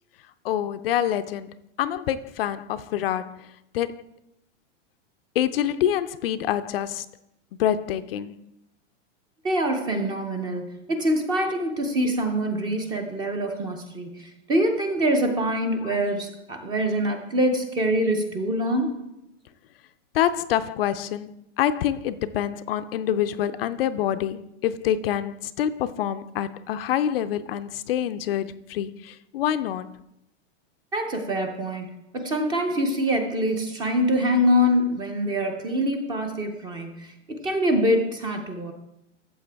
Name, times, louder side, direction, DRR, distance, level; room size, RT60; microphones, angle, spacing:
voice 1, 0.4-1.5 1.8-3.4 3.7-4.0 5.4-7.0 7.6-8.4 15.8-16.0 20.1-29.9, left 10 dB, 55° left, 12 dB, 0.4 m, -26 dB
voice 2, 9.4-19.0 30.9-31.9 32.1-38.7, equal, 10° right, 5 dB, 0.5 m, -25 dB
13.5 x 7.5 x 3.4 m, 0.86 s
supercardioid pair, 160°, 36 cm